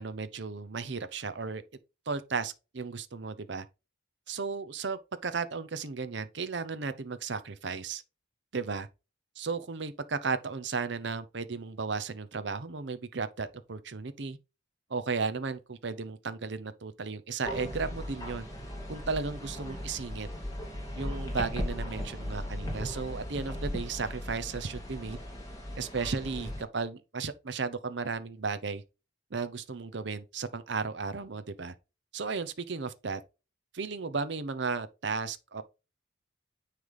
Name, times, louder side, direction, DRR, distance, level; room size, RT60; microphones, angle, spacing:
voice 1, 0.0-1.6 2.1-3.7 4.3-8.0 8.5-8.9 9.4-14.4 14.9-18.5 18.9-20.3 20.9-25.2 25.7-28.8 29.3-31.7 32.1-33.2 33.7-35.6, right 4 dB, 60° right, 0.7 m, -34 dB
sound 1, 17.4-26.6, equal, 15° left, 2.4 m, -37 dB
9.5 x 3.3 x 3.8 m
head